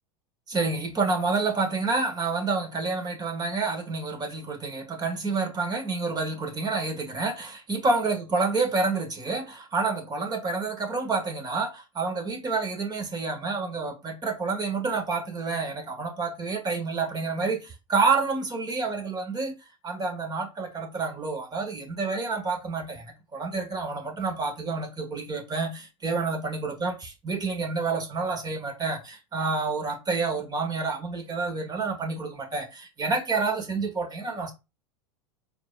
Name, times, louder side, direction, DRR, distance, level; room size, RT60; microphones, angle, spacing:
voice 1, 0.5-19.5 19.8-34.5, right 4 dB, 25° right, 1.5 m, -28 dB
4.5 x 3.9 x 2.4 m
hypercardioid pair, 95°, 17 cm